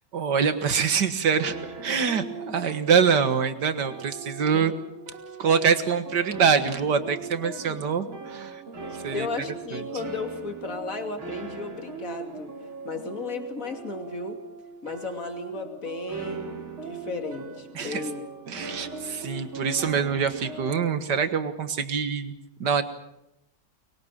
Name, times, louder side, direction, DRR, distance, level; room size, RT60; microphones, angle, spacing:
voice 1, 0.1-1.6 1.8-4.7 5.4-8.6 9.0-9.3 9.7-9.8 17.8-18.1 18.5-22.3 22.6-22.8, right 6 dB, 55° right, 10 dB, 2.1 m, -24 dB
sound 1, 1.4-21.0, right 4 dB, 75° right, 3.8 m, -39 dB
voice 2, 9.1-12.5 12.8-14.4 14.8-18.2, left 3 dB, 40° left, 5 dB, 3.0 m, -34 dB
23.5 x 23.0 x 7.5 m, 0.84 s
omnidirectional pair, 2.3 m